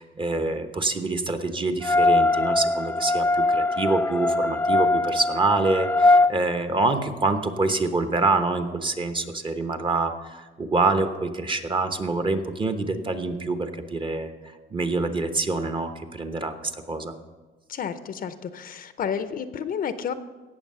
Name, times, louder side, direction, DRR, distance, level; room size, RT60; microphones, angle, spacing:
voice 1, 0.0-14.3 14.7-17.1, right 3 dB, 25° right, 8 dB, 1.0 m, -26 dB
sound 1, 1.8-6.3, left 2 dB, 10° left, 0.4 m, -21 dB
voice 2, 17.7-20.1, left 7 dB, 45° left, 11 dB, 0.7 m, -31 dB
17.0 x 6.9 x 5.6 m, 1.3 s
cardioid pair, 120°, 20 cm